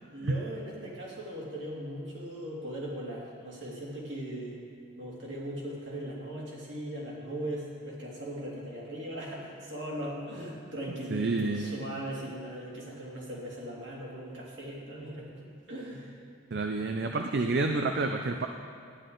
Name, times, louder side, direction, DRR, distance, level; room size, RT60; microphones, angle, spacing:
voice 1, 0.1-4.6 5.0-16.2, right 1 dB, 70° right, -5 dB, 2.6 m, -39 dB
voice 2, 11.1-11.9 16.5-18.5, right 3 dB, 55° right, 5 dB, 0.5 m, -29 dB
11.5 x 10.0 x 3.9 m, 2.3 s
head